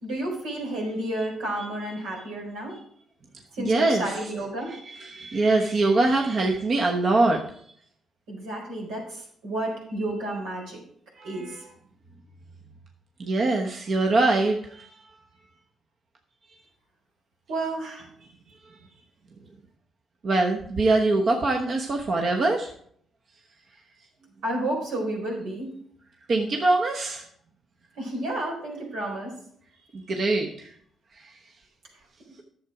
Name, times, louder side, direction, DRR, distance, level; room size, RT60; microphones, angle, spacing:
voice 1, 0.0-2.8 3.5-4.8 8.3-10.8 11.2-11.6 17.5-18.1 24.2-25.7 28.0-29.3, right 1 dB, 90° right, -1 dB, 4.5 m, -31 dB
voice 2, 3.6-4.3 4.7-7.6 11.2-11.7 13.2-14.9 20.2-22.7 26.3-27.3 29.9-30.7 31.2-31.3, right 2 dB, 50° right, 1 dB, 1.1 m, -23 dB
11.0 x 7.4 x 4.9 m, 0.64 s
cardioid pair, 90°, 0 cm